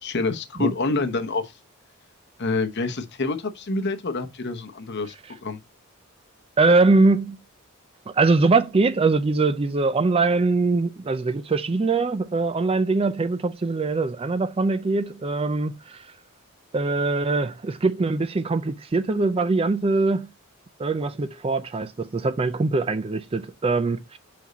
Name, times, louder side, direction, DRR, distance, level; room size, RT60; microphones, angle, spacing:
voice 1, 0.0-1.5 2.4-5.1 5.4-5.6, left 3 dB, 50° left, 0.9 m, -27 dB
voice 2, 6.6-7.4 8.1-16.1 16.7-20.3 20.8-24.2, right 3 dB, 25° right, 0.4 m, -22 dB
5.3 x 5.2 x 3.9 m
head